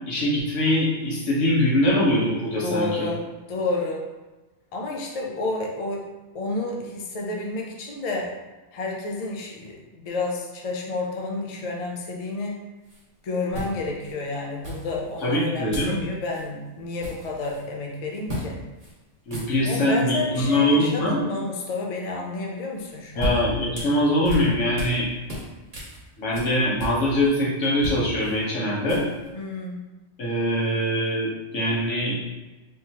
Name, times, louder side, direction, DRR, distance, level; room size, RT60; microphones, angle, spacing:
voice 1, 0.1-3.1 15.2-16.0 19.3-21.2 23.2-25.1 26.2-29.0 30.2-32.2, left 1 dB, 90° left, -5 dB, 1.4 m, -23 dB
voice 2, 2.5-3.2 3.5-4.0 4.7-6.0 6.3-8.3 8.7-12.6 13.2-18.6 19.6-23.3 29.3-29.8, left 2 dB, 45° left, 0 dB, 0.5 m, -30 dB
sound 1, 12.8-13.0 13.5-14.1 14.6-15.3 15.7-16.0 16.3-16.4 16.8-17.6 18.3-18.5 18.8-18.9 19.2-19.9 22.8-25.0 25.3-27.3 27.6-29.3, right 1 dB, 35° right, 1.1 m, -34 dB
3.5 x 3.0 x 2.8 m, 1.1 s
omnidirectional pair, 1.2 m